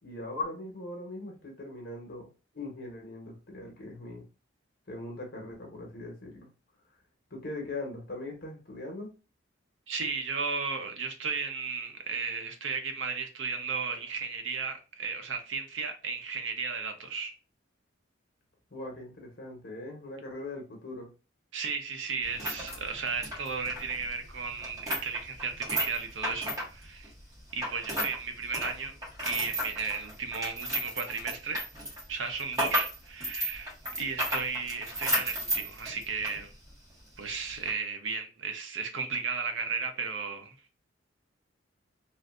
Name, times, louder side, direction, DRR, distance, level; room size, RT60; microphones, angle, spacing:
voice 1, 0.0-2.3 2.5-4.2 4.9-6.5 7.3-9.1 18.7-21.1, left 2 dB, 55° left, 1.1 m, -40 dB
voice 2, 9.9-17.3 21.5-27.1 27.5-28.9 29.2-31.6 32.1-36.5 37.2-40.7, right 5 dB, 75° right, 0.7 m, -34 dB
sound 1, 22.2-28.2 28.4-36.4 36.7-36.8 37.5-37.7, equal, 20° right, 1.5 m, -33 dB
3.2 x 2.5 x 2.4 m
head